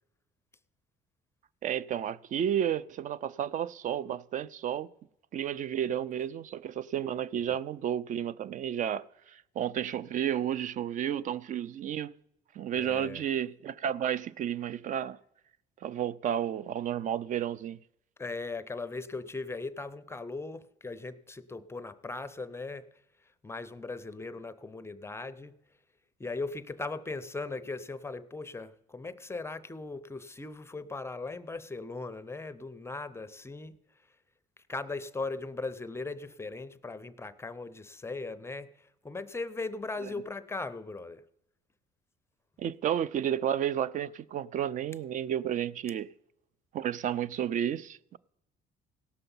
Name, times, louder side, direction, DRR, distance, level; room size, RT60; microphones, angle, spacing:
voice 1, 1.6-4.9 5.3-12.1 12.5-15.2 15.8-17.8 42.6-46.1 46.7-48.2, right 10 dB, 50° right, 0.4 m, -32 dB
voice 2, 12.7-13.2 18.2-22.9 23.2-25.6 26.2-33.8 34.6-41.2, left 3 dB, 15° left, 0.5 m, -39 dB
17.0 x 6.8 x 5.4 m
cardioid pair, 110°, 17 cm